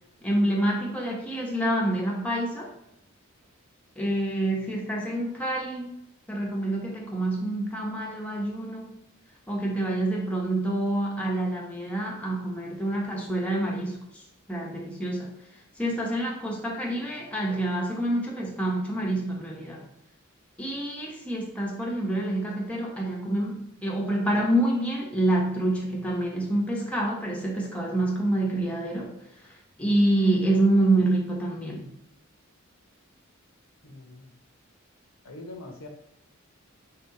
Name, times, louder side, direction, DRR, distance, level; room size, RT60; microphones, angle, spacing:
voice 1, 0.2-2.7 4.0-5.9 6.3-8.9 9.5-14.2 14.5-15.4 15.8-19.9 20.6-29.1 29.4-29.5 29.8-31.9, right 1 dB, 5° left, -2 dB, 0.8 m, -27 dB
voice 2, 33.8-34.3 35.2-35.9, left 2 dB, 80° left, 3 dB, 0.8 m, -43 dB
3.5 x 2.8 x 4.6 m, 0.80 s
head